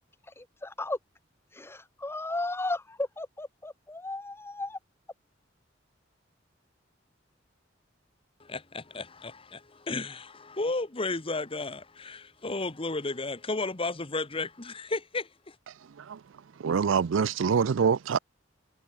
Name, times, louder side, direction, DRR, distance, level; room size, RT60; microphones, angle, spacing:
voice 1, 0.4-1.0 1.5-4.8, left 2 dB, 15° left, 0.8 m, -35 dB
voice 2, 8.4-15.5, left 3 dB, 30° left, 1.3 m, -33 dB
voice 3, 16.6-18.2, right 6 dB, 90° right, 0.4 m, -25 dB
head